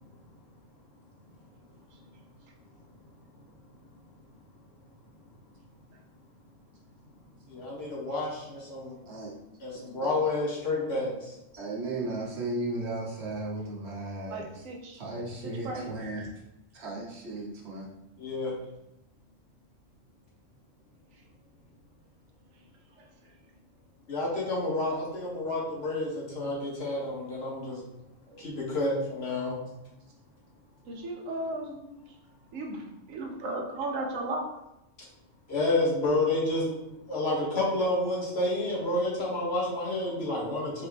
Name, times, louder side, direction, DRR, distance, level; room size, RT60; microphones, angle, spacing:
voice 1, 7.5-9.0 9.6-11.1 18.2-18.5 24.1-27.8 28.4-29.6 35.5-36.7 37.1-40.9, left 2 dB, 55° left, -5 dB, 1.5 m, -29 dB
voice 2, 11.5-14.6 14.9-16.3 16.7-17.9 28.3-28.4, right 2 dB, 60° right, -2 dB, 1.2 m, -35 dB
voice 3, 14.3-15.0 15.4-15.9 21.1-21.2 23.0-23.3 30.9-32.2 32.5-34.5, right 2 dB, 90° right, 1 dB, 1.2 m, -36 dB
4.3 x 3.4 x 3.3 m, 0.90 s
omnidirectional pair, 1.3 m